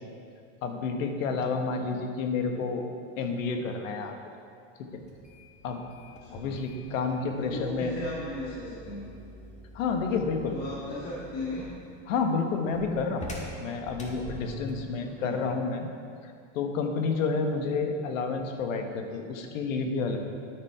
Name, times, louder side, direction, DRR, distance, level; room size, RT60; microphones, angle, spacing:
voice 1, 0.6-2.8 3.2-4.2 4.9-5.0 5.6-5.8 6.3-7.9 9.7-10.6 12.1-13.3 13.6-15.9 16.2-20.2, left 4 dB, 85° left, 5 dB, 1.3 m, -30 dB
voice 2, 1.3-1.9 6.1-6.6 7.4-9.0 10.4-11.7 15.0-15.4, left 1 dB, 40° left, -7 dB, 1.9 m, -37 dB
sound 1, 5.0-14.9, equal, 20° left, 1.5 m, -45 dB
10.5 x 8.8 x 4.8 m, 2.3 s
supercardioid pair, 140°, 38 cm